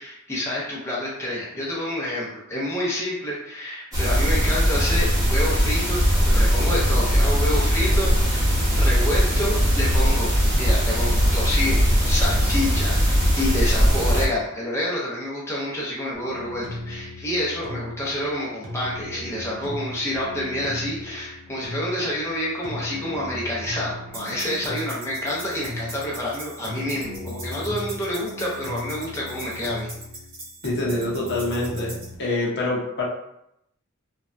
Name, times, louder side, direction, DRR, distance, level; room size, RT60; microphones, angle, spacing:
voice 1, 0.0-29.9, left 1 dB, 15° left, -6 dB, 0.6 m, -28 dB
sound 1, 3.9-14.3, equal, 15° right, 0.8 m, -20 dB
sound 2, 16.1-32.1, left 1 dB, 45° right, 0.9 m, -36 dB
voice 2, 30.6-33.0, left 2 dB, 55° left, -4 dB, 0.8 m, -26 dB
3.2 x 2.2 x 2.5 m, 0.79 s
head